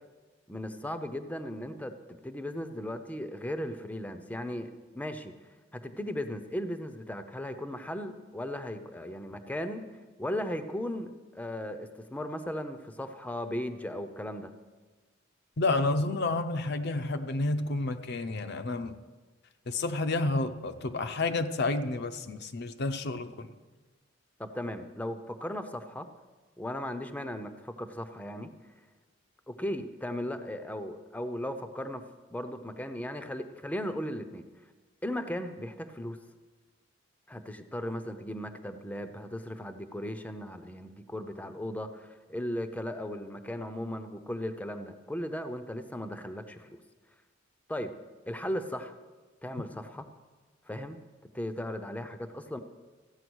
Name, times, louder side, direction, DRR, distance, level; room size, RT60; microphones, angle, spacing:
voice 1, 0.5-9.9 10.2-14.5 24.4-26.1 26.6-28.5 29.5-32.0 32.3-34.5 35.0-36.2 37.3-46.7 47.7-47.9 48.3-48.9 49.4-50.1 50.7-51.0 51.3-52.6, left 1 dB, 10° left, 9 dB, 0.6 m, -37 dB
voice 2, 15.6-19.0 19.7-23.5, left 2 dB, 60° left, 9 dB, 0.6 m, -30 dB
14.5 x 8.8 x 6.2 m, 1.3 s
head